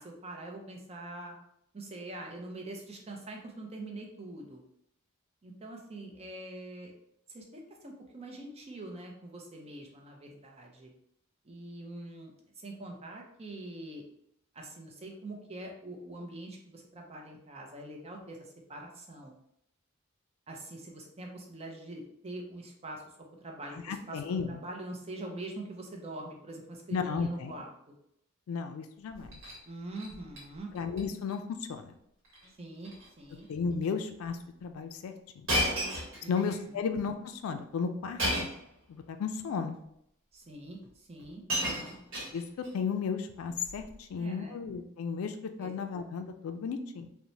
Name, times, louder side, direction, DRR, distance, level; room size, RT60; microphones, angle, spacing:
voice 1, 0.0-1.3 1.7-4.6 5.4-6.9 7.3-10.9 11.4-14.0 14.5-19.3 20.5-23.0 23.4-24.2 24.5-27.9 29.7-30.7 32.6-32.9 33.2-33.5 36.2-36.4 36.7-36.8 40.3-41.9 44.1-44.6 45.6-45.7, right 2 dB, 30° right, 0 dB, 0.5 m, -44 dB
voice 2, 23.9-24.6 26.9-27.5 28.5-29.4 30.7-31.4 31.7-31.9 33.5-35.5 36.3-38.5 38.9-39.8 42.3-42.4 42.7-47.1, left 5 dB, 80° left, 8 dB, 0.3 m, -34 dB
Shatter, 29.1-29.6 29.9-30.4 30.7-31.0 31.3-31.4 32.2-32.5 32.8-33.1 33.8-33.9 35.5-36.6 38.2-38.7 39.7-39.8 40.8-40.9 41.2-42.7 43.6-43.9, equal, 65° right, 1.0 m, -33 dB
3.0 x 2.1 x 2.6 m, 0.75 s
head